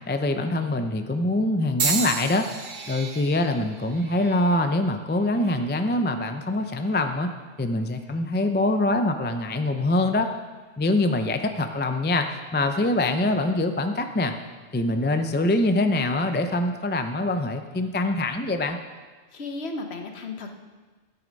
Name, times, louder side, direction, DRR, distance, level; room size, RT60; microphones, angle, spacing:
voice 1, 0.1-2.5 2.9-7.3 7.6-10.3 10.8-14.3 14.7-18.8, left 2 dB, 15° left, 7 dB, 0.3 m, -24 dB
sound 1, 1.8-5.9 6.6-7.1 8.0-8.2, right 5 dB, 50° right, 0.9 m, -33 dB
voice 2, 19.3-20.5, left 3 dB, 65° left, 4 dB, 1.3 m, -34 dB
12.5 x 8.6 x 5.3 m, 1.4 s
omnidirectional pair, 1.2 m